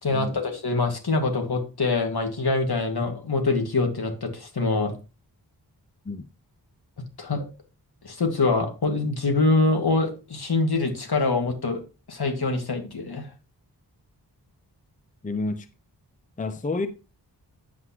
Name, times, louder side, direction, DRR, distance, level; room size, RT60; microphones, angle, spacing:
voice 1, 0.0-4.9 7.2-7.5 8.0-11.8 12.1-13.3, left 3 dB, 65° left, 1.9 m, -24 dB
voice 2, 15.2-15.7 16.4-16.9, left 3 dB, 20° left, 0.6 m, -29 dB
9.3 x 7.8 x 2.9 m
wide cardioid pair, 75°, 41 cm